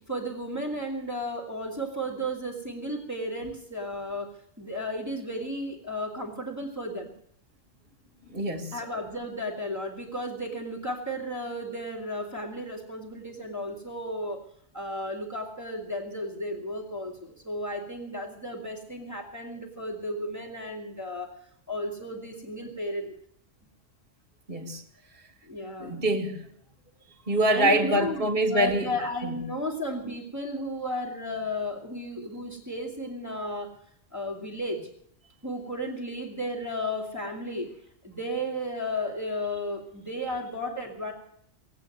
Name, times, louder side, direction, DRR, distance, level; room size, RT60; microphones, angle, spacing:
voice 1, 0.0-4.3 4.6-7.1 8.7-14.4 14.7-21.3 21.7-23.1 25.4-26.0 27.5-33.7 34.1-34.9 35.4-37.7 38.0-41.1, equal, 15° right, 1 dB, 2.2 m, -34 dB
voice 2, 8.3-8.7 24.5-24.8 25.8-26.4 27.3-28.9, right 1 dB, 45° right, 1 dB, 2.0 m, -24 dB
18.5 x 8.5 x 9.1 m, 0.67 s
omnidirectional pair, 1.3 m